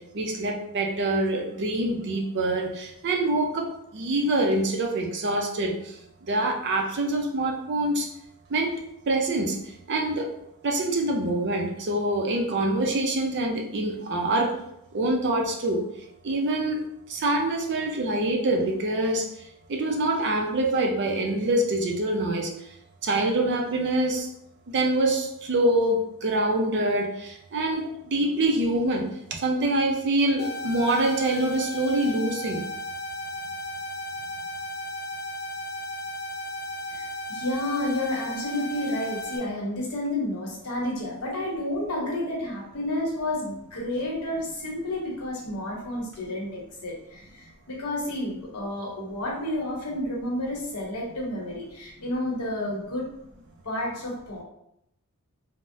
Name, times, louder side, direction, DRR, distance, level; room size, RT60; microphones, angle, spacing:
voice 1, 0.1-3.7 3.9-5.7 6.3-8.1 8.5-8.7 9.1-9.5 9.9-10.2 10.6-14.5 14.9-15.8 16.2-16.8 17.1-19.2 19.7-22.5 23.0-24.3 24.7-27.1 27.5-32.6, right 1 dB, 50° right, 2 dB, 0.5 m, -25 dB
sound 1, 30.4-39.4, left 1 dB, 45° left, 0.7 m, -35 dB
voice 2, 36.9-53.1 53.6-54.4, left 1 dB, 85° left, -2 dB, 0.9 m, -30 dB
3.4 x 2.0 x 2.6 m, 0.78 s
head